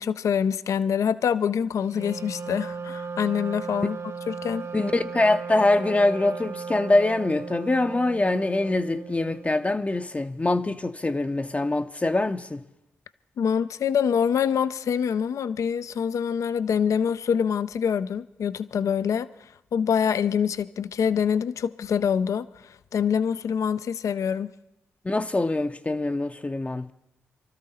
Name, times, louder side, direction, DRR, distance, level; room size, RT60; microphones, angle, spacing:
voice 1, 0.0-4.0 4.3-4.7 13.4-19.3 19.7-24.5, left 7 dB, 65° left, 0.5 m, -25 dB
Wind instrument woodwind instrument, 1.9-9.7, right 5 dB, 45° right, 0.5 m, -36 dB
voice 2, 4.7-12.6 25.0-26.9, left 2 dB, 25° left, 0.6 m, -24 dB
24.0 x 13.0 x 4.2 m
hypercardioid pair, 40°, 6 cm